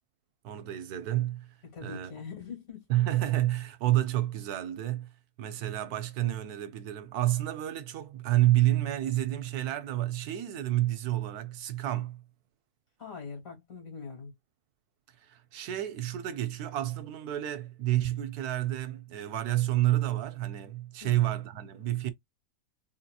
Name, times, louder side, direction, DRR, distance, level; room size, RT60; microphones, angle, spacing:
voice 1, 0.4-1.5 1.8-2.1 2.9-5.1 5.4-12.2 15.2-22.1, right 14 dB, 75° right, 1.1 m, -29 dB
voice 2, 1.6-2.9 13.0-14.3 21.0-21.3, left 5 dB, 60° left, 2.4 m, -43 dB
3.8 x 2.7 x 2.2 m
omnidirectional pair, 1.7 m